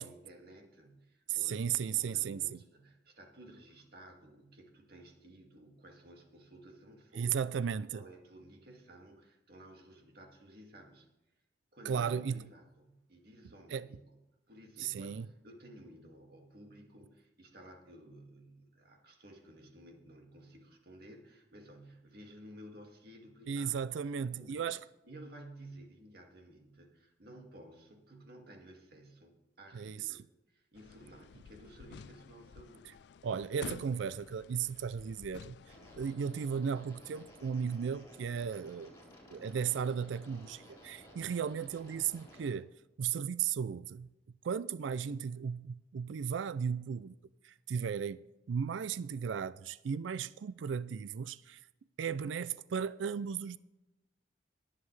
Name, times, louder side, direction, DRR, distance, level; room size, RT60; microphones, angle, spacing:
voice 1, 0.0-7.4 7.9-11.1 11.7-14.2 14.5-23.9 24.2-24.7 25.0-32.9, right 1 dB, 55° right, 2.2 m, -54 dB
voice 2, 1.3-2.6 7.2-8.0 11.9-12.4 13.7-13.9 14.8-15.3 23.5-24.8 29.7-30.1 33.2-35.6 36.0-38.9 39.3-42.7 43.0-44.1 44.4-47.2 47.4-51.6 52.0-53.6, right 7 dB, 85° right, 0.4 m, -35 dB
sound 1, 30.8-36.1, left 6 dB, 60° left, 0.3 m, -51 dB
sound 2, 35.7-42.5, equal, 15° left, 4.1 m, -55 dB
22.0 x 7.5 x 3.3 m
head